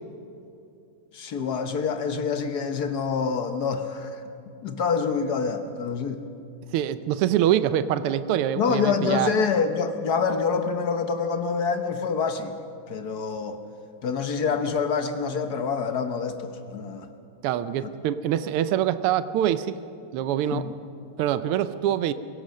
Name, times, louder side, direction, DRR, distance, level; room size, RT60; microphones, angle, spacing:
voice 1, 1.1-4.2 4.6-6.2 8.6-12.5 12.9-13.6 14.0-17.1 20.5-20.6, left 5 dB, 55° left, 8 dB, 1.3 m, -26 dB
voice 2, 6.7-9.3 17.4-19.8 20.1-20.7 21.2-22.1, right 11 dB, 85° right, 13 dB, 1.6 m, -24 dB
24.0 x 16.5 x 6.5 m, 2.6 s
omnidirectional pair, 2.4 m